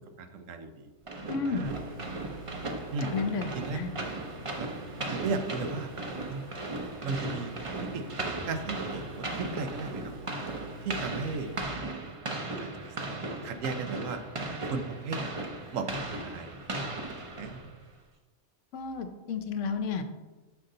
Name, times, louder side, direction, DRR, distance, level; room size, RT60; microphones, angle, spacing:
voice 1, 0.2-0.9 1.4-1.7 2.9-3.1 3.5-3.8 4.6-4.7 5.1-5.9 6.3-6.4 7.0-7.5 7.8-10.1 10.8-11.5 11.8-12.1 12.6-14.2 14.7-15.3 15.7-16.5 17.4-17.7, right 4 dB, 85° right, 7 dB, 1.1 m, -36 dB
sound 1, 1.1-17.8, right 2 dB, 30° right, 0.7 m, -37 dB
voice 2, 1.3-1.7 3.1-3.9 18.7-20.0, left 5 dB, 75° left, 7 dB, 1.0 m, -32 dB
sound 2, 1.6-11.6, right 2 dB, 70° right, 1.5 m, -47 dB
6.8 x 5.3 x 3.8 m, 1.2 s
omnidirectional pair, 1.3 m